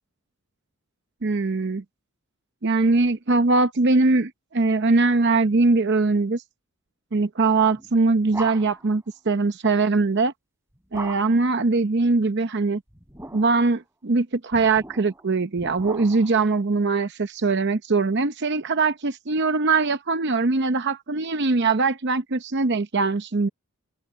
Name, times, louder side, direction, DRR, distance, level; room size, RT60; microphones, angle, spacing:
voice 1, 1.2-1.8 2.6-6.4 7.1-10.3 10.9-12.8 13.3-23.5, right 3 dB, 50° right, 0.7 m, -21 dB
sound 1, 7.8-8.9 10.9-11.5 12.9-13.7 14.5-16.5, right 2 dB, 10° right, 5.1 m, -39 dB
head